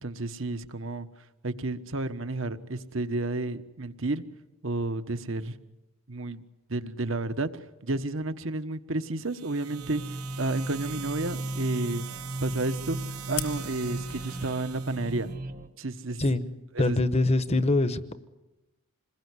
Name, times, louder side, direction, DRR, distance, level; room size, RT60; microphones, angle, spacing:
voice 1, 0.0-1.1 1.4-4.2 4.6-5.6 6.1-6.4 6.7-12.0 12.4-13.0 13.3-15.3 15.8-16.2 16.7-17.0, right 2 dB, 60° right, 10 dB, 1.3 m, -31 dB
sound 1, 9.2-15.3, right 10 dB, 85° right, 1.0 m, -44 dB
sound 2, 9.7-15.7, right 1 dB, 40° right, 1.3 m, -36 dB
Fire, 13.4-14.5, left 11 dB, 85° left, 2.8 m, -38 dB
voice 2, 16.8-18.1, left 2 dB, 30° left, 12 dB, 1.1 m, -24 dB
27.5 x 21.0 x 9.8 m, 1.0 s
head